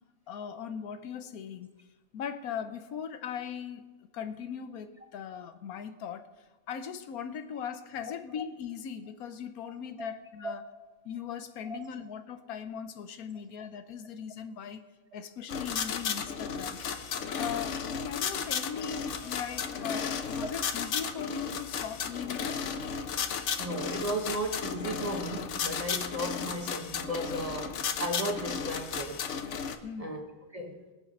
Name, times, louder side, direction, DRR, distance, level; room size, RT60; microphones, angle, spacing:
voice 1, 0.3-1.7 2.1-6.3 6.7-10.6 11.0-14.8 15.1-16.8 17.3-22.6 29.8-30.2, left 7 dB, 80° left, 1.2 m, -39 dB
sound 1, 15.5-29.8, left 6 dB, 60° left, 1.0 m, -34 dB
voice 2, 23.6-29.2 30.0-30.8, right 1 dB, 25° right, 1.1 m, -35 dB
20.0 x 7.3 x 5.3 m
omnidirectional pair, 1.5 m